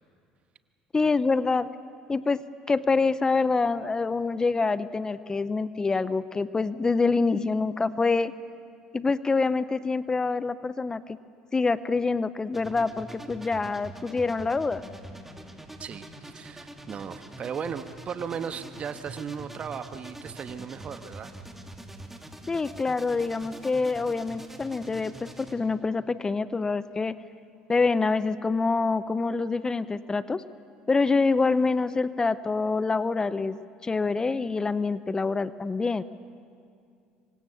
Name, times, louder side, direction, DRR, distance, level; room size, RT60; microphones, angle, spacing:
voice 1, 0.9-1.7 2.1-8.3 8.9-11.2 11.5-14.8 22.5-27.2 27.7-30.4 30.9-36.0, left 4 dB, 25° left, 16 dB, 0.7 m, -26 dB
sound 1, 12.5-25.5, right 1 dB, 10° right, 2.8 m, -44 dB
voice 2, 15.8-21.3, right 7 dB, 45° right, 10 dB, 1.3 m, -36 dB
26.0 x 24.0 x 7.1 m, 2.4 s
hypercardioid pair, 70°, 3 cm